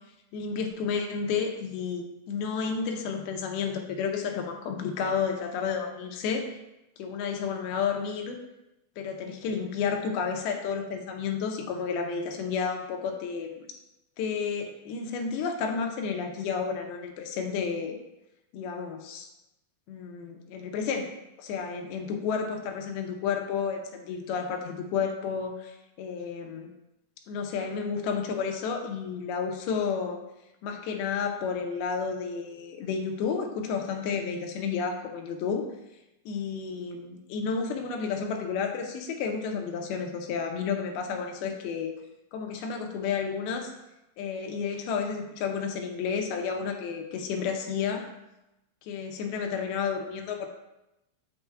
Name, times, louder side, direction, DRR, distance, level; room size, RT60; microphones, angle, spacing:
voice 1, 0.3-6.5 7.0-8.4 9.0-13.6 14.2-18.0 18.5-19.3 19.9-21.1 21.4-26.7 27.3-30.2 30.6-35.7 36.3-41.9 42.3-43.7 44.2-48.1 48.8-50.5, left 6 dB, 80° left, 3 dB, 2.6 m, -31 dB
6.9 x 6.8 x 2.3 m, 0.91 s
omnidirectional pair, 4.5 m